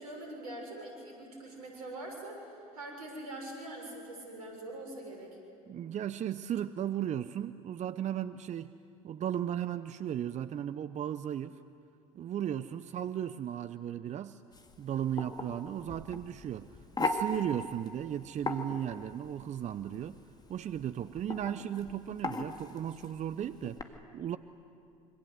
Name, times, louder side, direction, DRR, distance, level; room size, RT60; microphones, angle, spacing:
voice 1, 0.0-5.4, right 1 dB, 80° right, 2 dB, 6.4 m, -43 dB
voice 2, 5.7-8.7 9.0-11.6 12.1-14.4 14.8-16.7 17.0-20.2 20.5-24.4, right 10 dB, 40° right, 14 dB, 0.7 m, -36 dB
sound 1, 14.5-23.8, left 2 dB, 20° left, 2.4 m, -39 dB
26.5 x 25.0 x 8.0 m, 2.5 s
hypercardioid pair, 65°, 19 cm